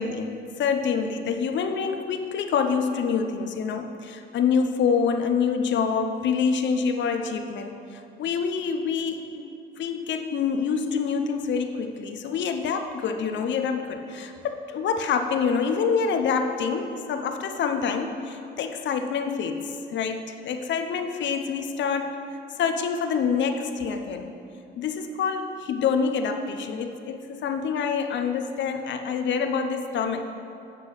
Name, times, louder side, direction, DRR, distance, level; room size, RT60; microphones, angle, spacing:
voice 1, 0.0-22.2 22.6-24.3 24.8-30.2, left 6 dB, 65° left, 6 dB, 0.7 m, -26 dB
8.1 x 6.0 x 5.6 m, 2.6 s
cardioid pair, 90°, 20 cm